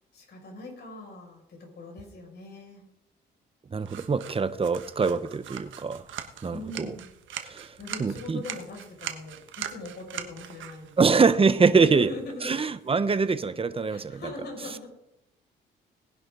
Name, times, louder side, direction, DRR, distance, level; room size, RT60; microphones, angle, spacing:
voice 1, 0.1-2.8 6.5-7.1 7.8-10.9 11.7-12.5 13.9-14.9, left 2 dB, 55° left, 1 dB, 6.2 m, -41 dB
voice 2, 3.7-6.0 6.4-6.9 7.4-8.4 11.0-12.1 12.4-14.2, right 4 dB, 30° right, 12 dB, 1.0 m, -24 dB
sound 1, 3.8-12.9, right 10 dB, 75° right, 1.3 m, -42 dB
19.0 x 10.5 x 3.9 m, 0.84 s
cardioid pair, 90°, 20 cm